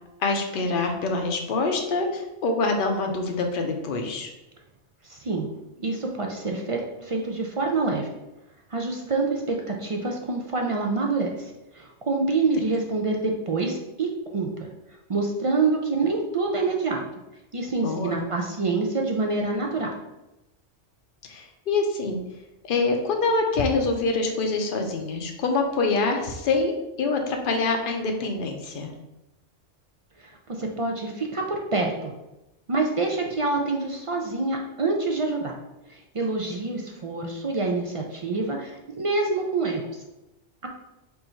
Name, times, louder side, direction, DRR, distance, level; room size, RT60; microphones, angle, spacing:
voice 1, 0.2-4.3 17.8-18.2 21.3-22.2 22.6-26.7 27.0-28.9, left 3 dB, 55° left, 3 dB, 0.8 m, -25 dB
voice 2, 5.0-5.5 5.8-8.1 8.7-14.7 15.1-17.0 17.5-19.9 30.2-32.1 32.7-35.6 35.9-39.9, right 3 dB, 50° right, 1 dB, 0.4 m, -26 dB
4.6 x 2.7 x 4.3 m, 0.95 s
omnidirectional pair, 1.2 m